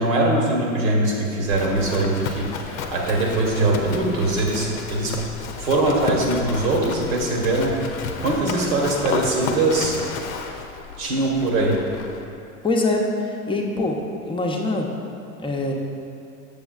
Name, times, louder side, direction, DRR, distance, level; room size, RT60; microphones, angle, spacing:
voice 1, 0.0-5.1 5.6-7.7 8.2-10.0 11.0-11.8, right 2 dB, 70° right, -1 dB, 1.3 m, -22 dB
Livestock farm animals working animals, 1.5-12.2, left 5 dB, 65° left, 0.7 m, -32 dB
voice 2, 12.6-14.0 14.2-14.9 15.4-15.7, left 2 dB, 10° left, 0 dB, 0.7 m, -23 dB
7.0 x 7.0 x 2.4 m, 2.6 s
hypercardioid pair, 80°, 43 cm